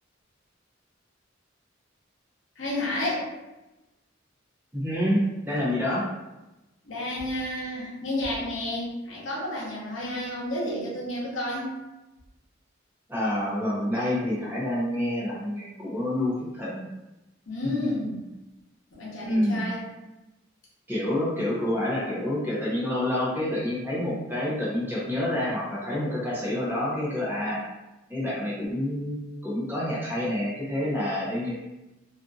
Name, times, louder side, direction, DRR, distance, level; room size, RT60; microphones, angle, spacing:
voice 1, 2.6-3.3 6.8-11.7 17.5-18.2 18.9-19.8, left 1 dB, 70° left, -5 dB, 0.9 m, -31 dB
voice 2, 4.7-6.1 13.1-16.9 19.2-19.6 20.9-27.6 28.1-31.5, left 1 dB, 10° right, -7 dB, 0.7 m, -28 dB
2.6 x 2.5 x 2.3 m, 1.0 s
head